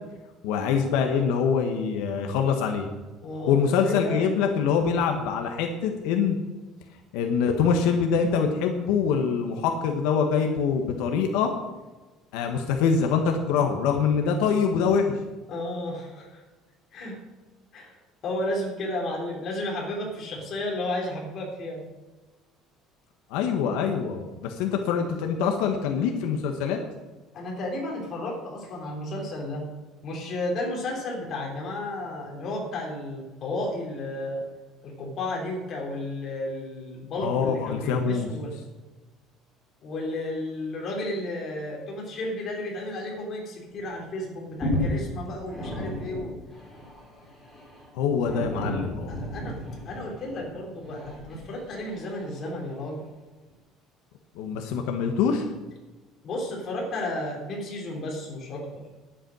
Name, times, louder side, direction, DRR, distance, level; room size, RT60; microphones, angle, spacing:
voice 1, 0.4-2.9 3.5-6.4 7.1-11.5 12.3-15.2 23.3-26.8 37.2-38.3 47.9-49.2 54.4-55.5, left 6 dB, 90° left, 4 dB, 1.4 m, -24 dB
voice 2, 3.2-3.6 3.8-4.3 15.5-16.4 16.9-17.2 17.7-18.0 18.2-21.8 27.3-29.6 30.0-34.4 34.8-38.5 39.8-46.3 49.1-53.0 56.2-58.8, left 1 dB, 35° left, -1 dB, 3.5 m, -33 dB
sound 1, 43.7-43.9 44.2-52.9 53.5-53.6, left 1 dB, 10° left, 4.8 m, -34 dB
10.5 x 8.7 x 6.3 m, 1.2 s
cardioid pair, 175°, 0 cm